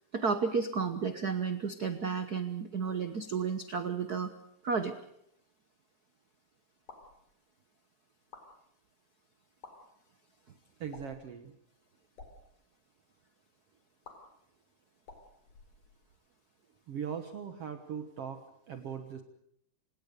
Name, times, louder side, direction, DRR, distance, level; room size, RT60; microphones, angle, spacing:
voice 1, 0.1-4.3 4.6-4.9, right 5 dB, 75° right, 9 dB, 0.8 m, -32 dB
sound 1, 6.8-7.2 8.2-8.5 9.5-9.7 10.9-11.3 12.0-12.3 14.0-14.1 15.0-16.2, left 4 dB, 85° left, 5.9 m, -52 dB
voice 2, 10.8-11.5 16.9-19.2, right 7 dB, 55° right, 7 dB, 2.1 m, -40 dB
28.5 x 18.0 x 6.7 m, 0.73 s
omnidirectional pair, 3.6 m